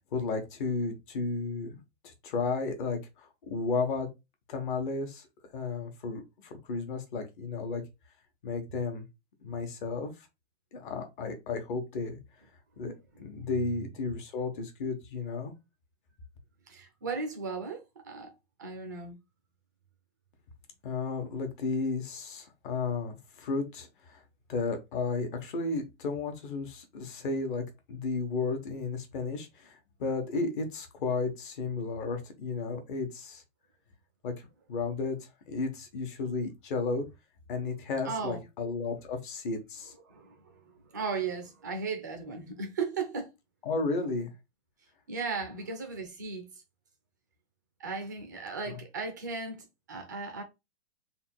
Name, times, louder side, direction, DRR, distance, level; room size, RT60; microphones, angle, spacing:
voice 1, 0.0-4.1 4.5-5.3 5.5-7.8 8.4-9.0 9.4-10.1 10.7-12.2 12.8-12.9 13.2-15.5 20.8-24.2 24.5-27.6 27.9-33.4 34.2-35.2 35.5-37.0 37.5-39.9 43.7-44.3 48.7-48.8, left 4 dB, 45° left, 1.0 m, -33 dB
voice 2, 13.1-13.5 16.7-18.3 18.6-19.2 38.0-38.4 40.1-43.3 45.1-46.5 47.8-50.4, right 4 dB, 20° right, 0.3 m, -36 dB
3.5 x 2.3 x 4.3 m
hypercardioid pair, 160°, 35 cm